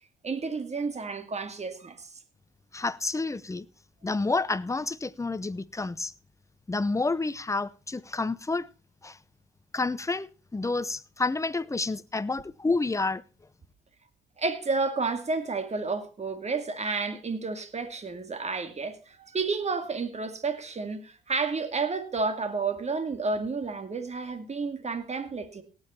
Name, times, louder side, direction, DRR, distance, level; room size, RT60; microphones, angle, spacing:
voice 1, 0.2-2.1 14.4-25.6, right 4 dB, 35° right, 2.3 m, -31 dB
voice 2, 2.7-3.7 4.0-6.1 6.7-8.7 9.0-9.2 9.7-13.2, left 3 dB, 15° left, 0.8 m, -29 dB
17.5 x 8.9 x 4.4 m
cardioid pair, 90°, 20 cm